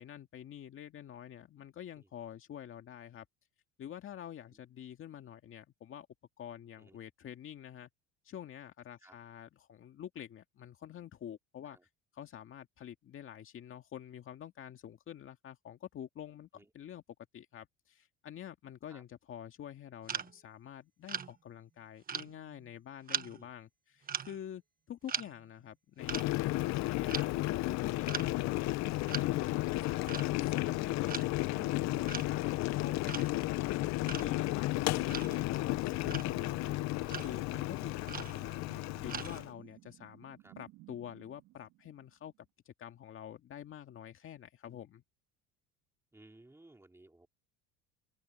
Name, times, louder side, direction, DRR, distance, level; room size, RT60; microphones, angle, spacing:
voice 1, 0.0-3.3 3.8-6.1 6.4-7.9 8.2-11.8 12.2-17.0 17.3-24.6 24.9-28.7 29.2-36.8 37.2-42.3 42.7-45.0, left 10 dB, 40° left, 2.0 m, -47 dB
sound 1, 20.0-20.3 21.1-21.3 22.1-22.6 23.1-23.4 24.0-24.4 25.1-25.3 26.1-26.3 27.1-27.3 28.1-28.3 29.1-29.3 30.1-30.3 31.1-31.3 32.1-32.4 33.1-33.3 34.1-34.3 35.1-35.5 36.1-36.4 37.1-37.5 38.1-38.6 39.1-39.6, right 7 dB, 30° right, 1.3 m, -40 dB
Boiling, 26.0-39.5, left 19 dB, 60° left, 0.7 m, -33 dB
sound 2, 29.7-42.4, right 18 dB, 65° right, 2.1 m, -57 dB
voice 2, 46.1-47.3, right 2 dB, 10° right, 3.7 m, -59 dB
open air
cardioid pair, 120°, 31 cm